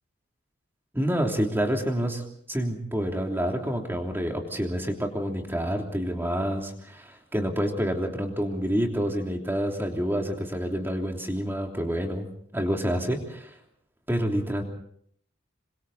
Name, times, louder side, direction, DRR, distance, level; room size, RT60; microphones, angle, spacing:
voice 1, 0.9-2.2 2.5-12.3 12.5-13.5 14.1-14.6, equal, 10° right, 2 dB, 3.2 m, -28 dB
27.0 x 26.5 x 4.2 m, 0.66 s
head